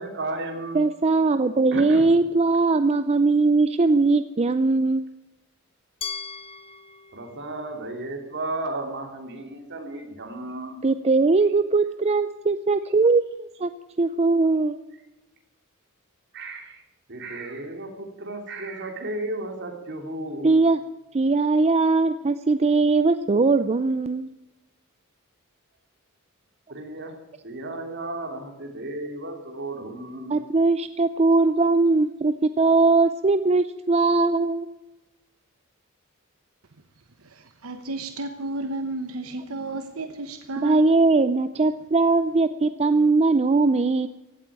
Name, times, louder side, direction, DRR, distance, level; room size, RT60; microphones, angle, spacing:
voice 1, 0.0-0.8 1.7-2.1 7.1-10.8 16.3-16.8 17.1-20.5 26.7-27.1 27.4-30.4, right 2 dB, 55° right, 3.1 m, -34 dB
voice 2, 0.7-5.0 10.8-13.3 13.6-13.7 14.0-14.8 20.4-20.8 21.1-24.3 30.3-34.7 40.6-44.1, right 3 dB, 30° right, 0.5 m, -20 dB
Glass, 6.0-8.9, left 6 dB, 25° left, 0.9 m, -40 dB
voice 3, 37.2-40.8, right 2 dB, 80° right, 1.1 m, -33 dB
16.0 x 8.6 x 9.2 m
head